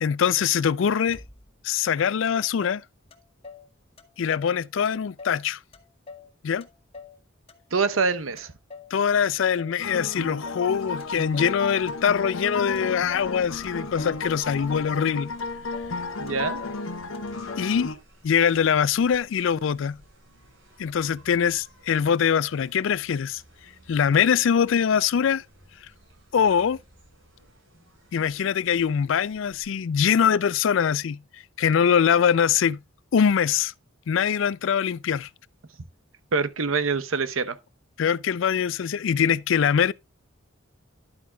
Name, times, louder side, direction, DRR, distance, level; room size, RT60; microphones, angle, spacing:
voice 1, 0.0-1.2 1.6-2.8 4.2-5.6 6.4-6.7 8.9-15.3 17.6-17.9 18.2-20.0 20.8-23.4 23.9-25.4 26.3-26.8 28.1-31.2 31.6-32.8 33.1-33.7 34.1-35.3 38.0-39.9, left 7 dB, 65° left, 0.4 m, -23 dB
Motor vehicle (road), 1.1-1.7 2.3-2.4 2.6-3.7 4.0-4.6 4.8-5.4 5.7-7.2 7.5-8.1 8.4-8.9 9.2-9.8 10.1-10.7 11.0-11.6 11.9-12.5 12.7-13.3 13.6-14.2 14.5-15.1 15.4-15.5 15.7-16.0 16.3-16.8 17.1-17.2 17.5-18.0, left 4 dB, 30° left, 1.1 m, -45 dB
voice 2, 7.7-8.5 16.2-16.6 36.3-37.6, right 4 dB, 85° right, 0.9 m, -25 dB
sound 1, 9.8-18.0, left 3 dB, 85° left, 1.1 m, -33 dB
sound 2, 10.7-29.6, right 1 dB, 65° right, 6.2 m, -55 dB
11.5 x 8.5 x 2.3 m
head